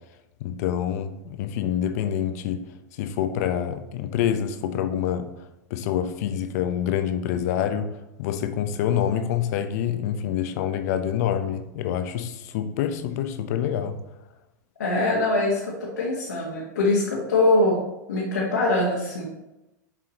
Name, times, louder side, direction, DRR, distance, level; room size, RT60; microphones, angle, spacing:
voice 1, 0.4-2.6 3.0-5.3 5.7-7.9 8.2-14.0, left 9 dB, 60° left, 0.7 m, -26 dB
voice 2, 14.8-17.8 18.1-19.3, left 2 dB, 80° left, 1.5 m, -23 dB
7.5 x 4.9 x 2.9 m
hypercardioid pair, 95°, 10 cm